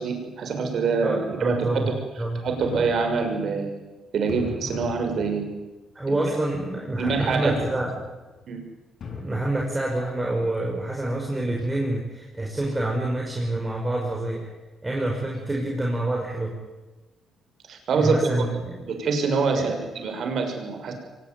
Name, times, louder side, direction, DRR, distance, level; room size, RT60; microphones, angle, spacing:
voice 1, 0.0-1.9 2.4-3.8 4.1-5.5 6.1-6.2 7.0-7.6 8.5-8.6 17.7-18.6 18.8-20.9, right 4 dB, 60° right, 5 dB, 6.4 m, -25 dB
voice 2, 1.0-2.4 5.9-7.9 9.1-14.5 14.8-16.5 18.0-18.7 19.5-19.8, right 1 dB, 15° right, -1 dB, 5.8 m, -27 dB
sound 1, 2.4-3.6 4.3-5.7 7.1-8.4 9.0-9.2, left 6 dB, 55° left, 6.9 m, -38 dB
23.5 x 20.5 x 9.4 m, 1.2 s
cardioid pair, 90°, 0 cm